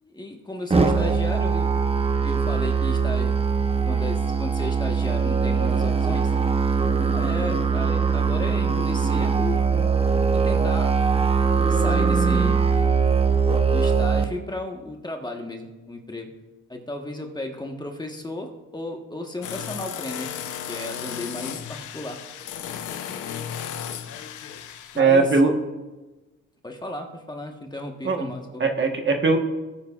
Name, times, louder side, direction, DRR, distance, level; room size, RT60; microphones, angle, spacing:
voice 1, 0.0-1.7 2.2-3.3 3.8-6.3 7.1-9.6 10.3-10.9 11.7-12.6 13.7-16.3 16.7-20.3 20.7-22.2 24.9-25.3 26.6-28.6, left 2 dB, 15° left, 2 dB, 1.3 m, -34 dB
Musical instrument, 0.7-14.2, right 5 dB, 20° right, 0.8 m, -21 dB
sound 1, 19.4-25.0, left 9 dB, 75° left, 0.8 m, -34 dB
voice 2, 25.0-25.5 28.0-28.3 28.6-29.4, right 4 dB, 40° right, 3 dB, 1.4 m, -19 dB
17.0 x 9.4 x 2.5 m, 1.1 s
cardioid pair, 90°, 30 cm